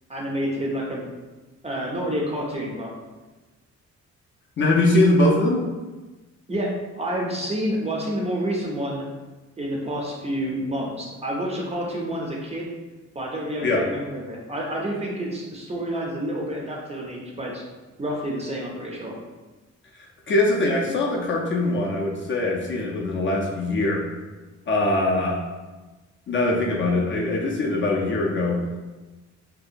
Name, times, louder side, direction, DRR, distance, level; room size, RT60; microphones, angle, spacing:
voice 1, 0.1-1.0 1.6-2.9 6.5-9.1 9.6-12.7 13.1-17.6 18.0-19.2, equal, 20° right, -2 dB, 0.4 m, -29 dB
voice 2, 4.6-5.6 13.6-13.9 20.3-24.0 24.7-25.5 26.3-28.6, left 2 dB, 40° left, -1 dB, 0.4 m, -22 dB
2.7 x 2.1 x 2.4 m, 1.2 s
cardioid pair, 110°, 30 cm